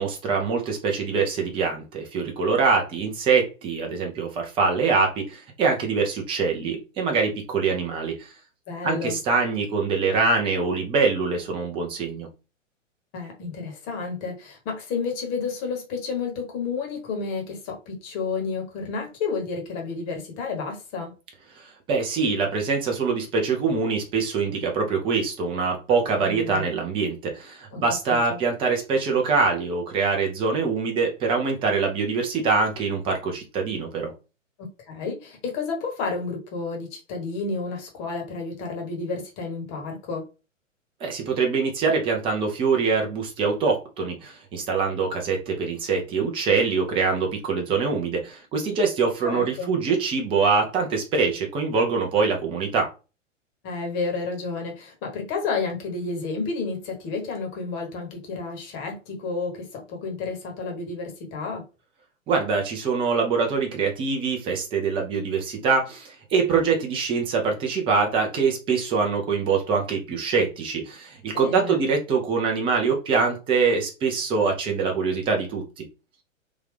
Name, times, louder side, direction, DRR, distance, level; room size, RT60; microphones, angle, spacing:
voice 1, 0.0-8.3 8.8-12.3 21.6-34.1 41.0-52.9 62.3-75.8, right 4 dB, 15° right, 0.6 m, -24 dB
voice 2, 8.7-9.2 13.1-21.1 26.2-26.7 27.7-27.8 28.1-28.4 34.6-40.2 49.2-49.7 53.6-61.6 71.3-71.8, left 4 dB, 30° left, 1.2 m, -31 dB
3.7 x 2.4 x 3.3 m
figure-of-eight pair, 115°, 39 cm